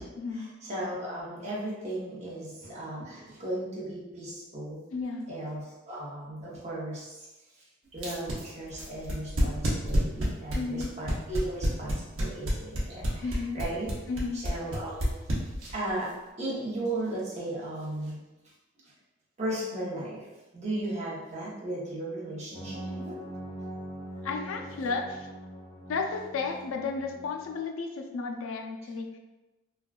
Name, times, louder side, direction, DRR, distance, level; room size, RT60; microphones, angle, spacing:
voice 1, 0.3-4.8 5.3-7.3 7.5-7.7 7.9-13.9 14.3-15.2 15.7-16.1 16.4-18.2 19.4-20.3 20.5-23.2, right 1 dB, 35° right, -7 dB, 0.8 m, -36 dB
voice 2, 4.9-5.3 10.5-10.9 13.2-13.6 14.1-14.4 24.2-25.3 25.9-29.1, left 4 dB, 85° left, 3 dB, 0.4 m, -33 dB
sound 1, 8.0-15.9, equal, 75° right, 0.7 m, -28 dB
sound 2, 22.5-27.6, right 1 dB, 20° left, 0.4 m, -42 dB
3.3 x 2.2 x 2.4 m, 1.1 s
head